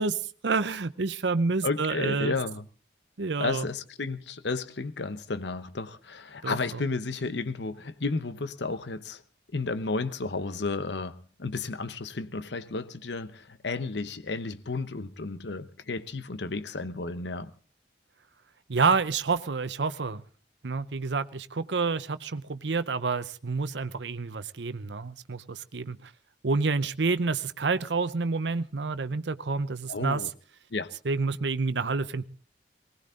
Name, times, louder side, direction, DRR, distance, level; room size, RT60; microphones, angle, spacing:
voice 1, 0.0-2.4 3.2-3.6 6.4-6.6 18.7-20.2 20.6-26.1 26.4-30.2 31.1-32.2, right 4 dB, 75° right, 0.7 m, -28 dB
voice 2, 1.6-2.6 3.4-9.2 9.5-17.5 29.9-30.3 30.7-30.9, left 3 dB, 75° left, 0.9 m, -32 dB
20.0 x 19.0 x 3.8 m
head